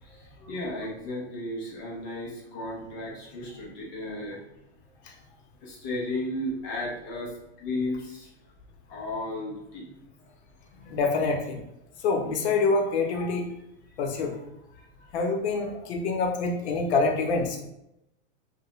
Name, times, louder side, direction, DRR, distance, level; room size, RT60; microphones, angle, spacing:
voice 1, 0.0-4.4 5.6-8.3 8.9-9.9 10.8-11.0 14.7-14.8, left 1 dB, 20° left, -3 dB, 0.3 m, -34 dB
voice 2, 10.9-11.6 12.0-13.5 14.0-14.3 15.1-17.6, left 3 dB, 75° left, 2 dB, 0.6 m, -26 dB
2.7 x 2.1 x 3.0 m, 0.83 s
supercardioid pair, 165°, 34 cm